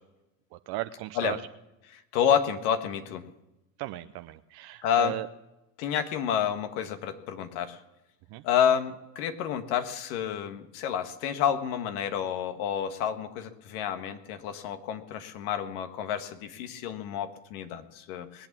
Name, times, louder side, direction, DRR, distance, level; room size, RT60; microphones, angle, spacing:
voice 1, 0.5-1.4 3.8-5.3 8.3-8.4, right 17 dB, 55° right, 10 dB, 0.7 m, -36 dB
voice 2, 2.1-3.2 4.8-5.1 5.8-7.8 8.4-18.5, left 9 dB, 70° left, 8 dB, 1.6 m, -29 dB
21.0 x 8.6 x 7.3 m, 0.96 s
hypercardioid pair, 80°, 46 cm